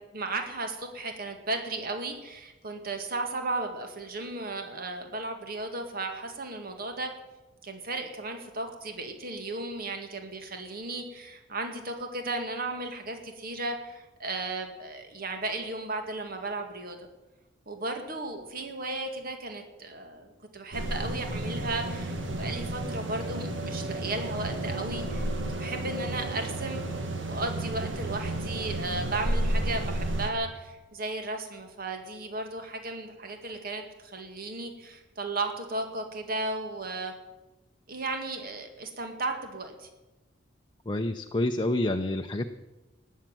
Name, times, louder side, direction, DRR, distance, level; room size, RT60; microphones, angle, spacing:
voice 1, 0.0-7.1 7.6-17.0 17.7-26.8 27.3-37.1 37.9-39.9, right 2 dB, 50° right, 5 dB, 2.1 m, -35 dB
sound 1, 20.7-30.3, right 1 dB, 70° right, 2.1 m, -32 dB
voice 2, 40.9-42.5, left 1 dB, 25° left, 5 dB, 0.7 m, -28 dB
19.0 x 7.5 x 9.1 m, 1.1 s
head